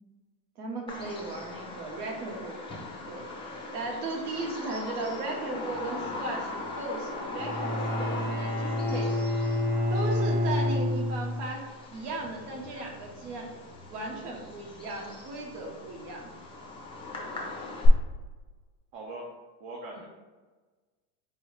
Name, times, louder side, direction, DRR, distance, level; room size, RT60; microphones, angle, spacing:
voice 1, 0.6-2.6 3.0-3.2 3.7-9.2 9.9-13.6 13.9-16.3, right 2 dB, 75° right, 0 dB, 1.2 m, -36 dB
Bird vocalization bird call bird song, 0.9-17.9, left 3 dB, 10° left, 0.5 m, -39 dB
Bowed string instrument, 7.4-11.5, left 1 dB, 20° right, 0.8 m, -28 dB
voice 2, 18.9-19.3 19.6-20.1, right 2 dB, 55° right, -2 dB, 0.9 m, -40 dB
4.6 x 2.0 x 4.6 m, 1.3 s
supercardioid pair, 140°, 46 cm